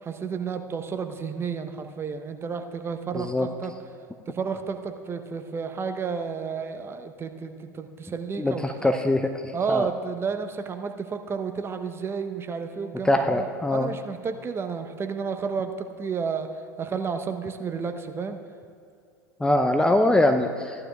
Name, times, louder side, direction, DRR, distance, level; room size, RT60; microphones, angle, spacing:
voice 1, 0.0-3.7 4.3-8.9 9.5-13.5 13.7-16.5 16.8-18.4, right 5 dB, 25° right, 7 dB, 0.8 m, -31 dB
voice 2, 3.1-3.5 8.4-9.9 13.0-13.9 19.4-20.9, left 1 dB, 10° left, 5 dB, 0.5 m, -23 dB
16.5 x 11.5 x 2.3 m, 2.4 s
hypercardioid pair, 85°, 10 cm